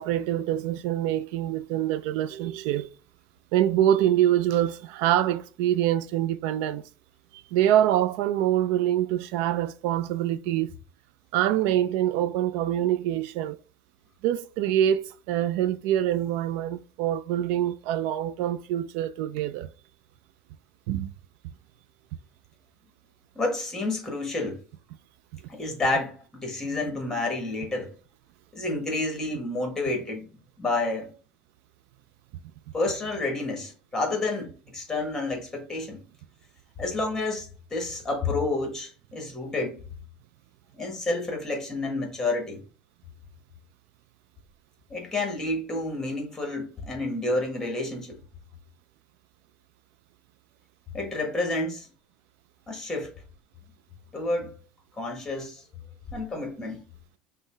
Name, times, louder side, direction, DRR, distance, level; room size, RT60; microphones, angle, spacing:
voice 1, 0.0-2.9 3.5-6.8 7.5-10.7 11.3-13.6 14.2-19.7 20.9-21.1, right 11 dB, 70° right, 0.3 m, -25 dB
voice 2, 23.3-24.6 25.5-27.9 28.5-30.3 30.6-31.1 32.7-36.0 36.8-39.8 40.7-42.6 44.9-48.2 50.9-51.9 52.7-53.1 54.1-54.5 55.0-55.6 56.1-56.8, left 2 dB, 10° left, 1.3 m, -29 dB
5.4 x 2.1 x 3.3 m
cardioid pair, 140°, 3 cm